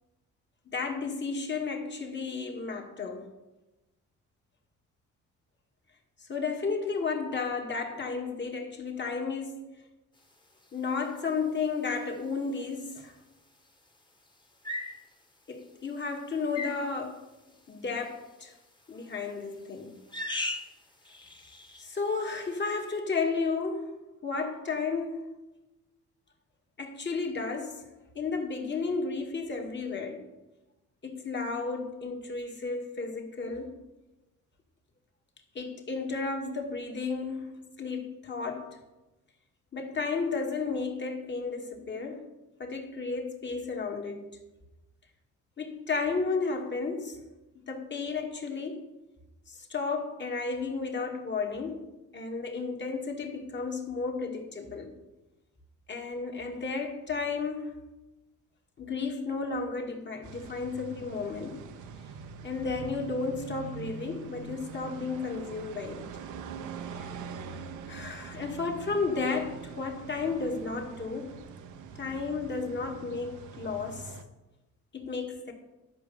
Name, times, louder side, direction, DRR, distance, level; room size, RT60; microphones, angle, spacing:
voice 1, 0.7-3.3 6.3-9.6 10.7-13.1 15.5-17.2 17.7-18.5 18.9-20.0 21.8-23.9 24.2-25.3 26.8-27.8 28.2-30.3 31.0-33.8 35.6-38.7 39.7-42.2 42.6-44.3 45.6-47.2 47.7-48.9 49.7-51.9 52.1-54.9 55.9-57.8 58.8-61.6 62.4-66.0 67.0-67.1 67.9-71.3 72.0-74.1 74.9-75.5, left 4 dB, 35° left, 2.0 m, -33 dB
sound 1, 12.4-12.6 14.6-15.0 16.5-16.9 18.9-19.3 20.1-20.8 21.0-21.9, left 2 dB, 15° left, 1.4 m, -36 dB
sound 2, 60.2-74.2, right 6 dB, 90° right, 1.0 m, -43 dB
11.5 x 5.3 x 7.0 m
cardioid pair, 90°, 30 cm